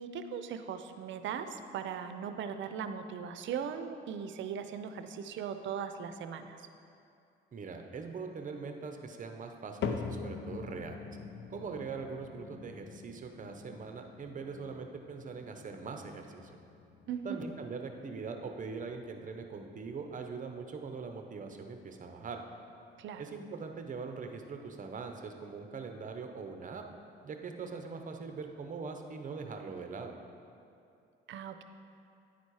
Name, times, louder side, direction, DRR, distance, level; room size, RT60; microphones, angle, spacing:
voice 1, 0.0-6.6 17.1-17.4 23.0-23.2 31.3-31.6, right 7 dB, 70° right, 9 dB, 0.5 m, -39 dB
voice 2, 7.5-11.0 11.5-16.5 17.2-22.4 23.2-26.8 27.2-30.1, right 5 dB, 40° right, 5 dB, 0.8 m, -42 dB
sound 1, 9.8-26.1 26.5-27.0 27.6-27.7 28.5-28.6, left 5 dB, 60° left, 0.6 m, -45 dB
9.9 x 4.2 x 4.7 m, 2.6 s
cardioid pair, 90°, 20 cm